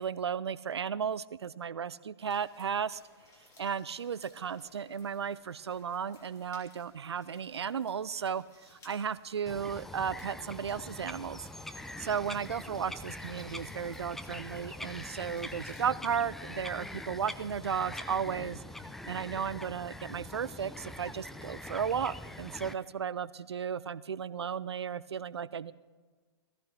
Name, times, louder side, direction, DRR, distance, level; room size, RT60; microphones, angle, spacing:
voice 1, 0.0-3.0 3.6-11.5 12.0-18.6 19.0-25.7, right 7 dB, 70° right, 19 dB, 0.5 m, -34 dB
sound 1, 2.2-15.9, left 2 dB, 20° left, 3.2 m, -61 dB
Bird vocalization bird call bird song, 9.5-22.7, left 1 dB, ahead, 0.4 m, -44 dB
18.5 x 14.5 x 3.8 m, 1.4 s
figure-of-eight pair, 115°, 14 cm